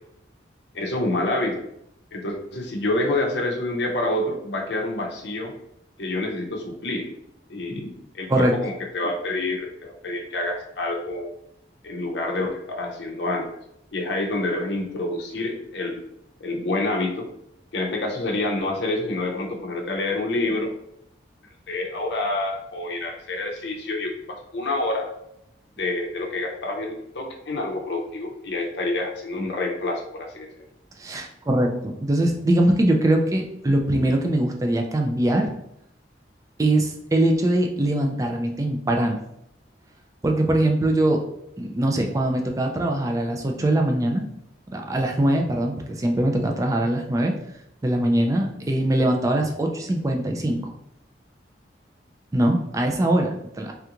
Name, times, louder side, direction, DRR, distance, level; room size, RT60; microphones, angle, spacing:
voice 1, 0.7-1.6 2.1-5.5 6.0-7.1 7.5-11.3 11.8-13.5 13.9-16.0 16.4-17.3 17.7-20.7 21.7-25.1 25.8-30.6, left 2 dB, 70° left, 1 dB, 0.6 m, -27 dB
voice 2, 31.0-35.5 36.6-39.2 40.2-41.2 41.6-44.2 44.7-47.3 47.8-50.6 52.3-53.7, right 1 dB, 20° right, 2 dB, 0.3 m, -22 dB
3.4 x 2.4 x 2.9 m, 0.78 s
head